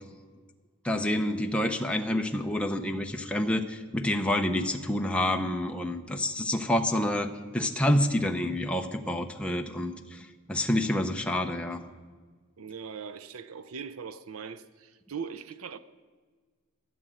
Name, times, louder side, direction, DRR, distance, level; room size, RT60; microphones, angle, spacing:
voice 1, 0.8-11.8, left 1 dB, 5° left, 0.7 m, -28 dB
voice 2, 12.6-15.8, right 6 dB, 75° right, 0.6 m, -40 dB
13.5 x 9.2 x 7.6 m
head